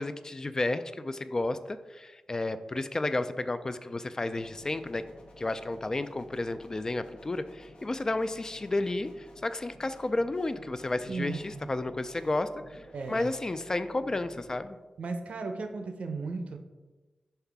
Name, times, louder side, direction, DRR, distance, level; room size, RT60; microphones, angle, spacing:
voice 1, 0.0-5.0 5.4-14.8, left 2 dB, 30° left, 11 dB, 0.3 m, -32 dB
sound 1, 4.3-14.6, left 1 dB, 50° left, 1.2 m, -53 dB
voice 2, 11.1-11.7 12.9-13.3 15.0-16.6, right 3 dB, 80° right, 6 dB, 0.7 m, -35 dB
5.6 x 5.6 x 3.5 m, 1.2 s
wide cardioid pair, 105°, 2 cm